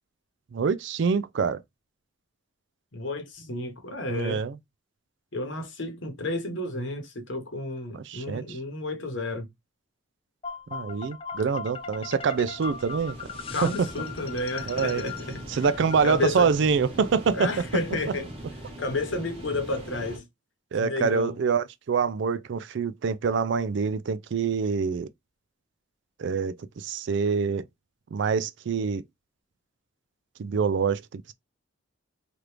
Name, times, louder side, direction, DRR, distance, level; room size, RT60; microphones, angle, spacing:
voice 1, 0.5-1.6 4.1-4.6 7.9-8.6 10.7-13.2 13.6-13.9 14.7-15.0 15.5-17.5 20.7-25.1 26.2-27.7 28.1-29.0 30.4-31.3, right 5 dB, 60° right, 0.3 m, -26 dB
voice 2, 2.9-4.4 5.3-9.5 13.5-15.4 16.0-16.5 17.3-18.3 18.8-20.2 20.8-21.4, left 2 dB, 65° left, 1.0 m, -31 dB
sound 1, 10.4-16.5, left 6 dB, 25° left, 0.3 m, -39 dB
sound 2, 11.6-20.2, right 1 dB, 25° right, 1.3 m, -41 dB
3.0 x 2.5 x 3.3 m
head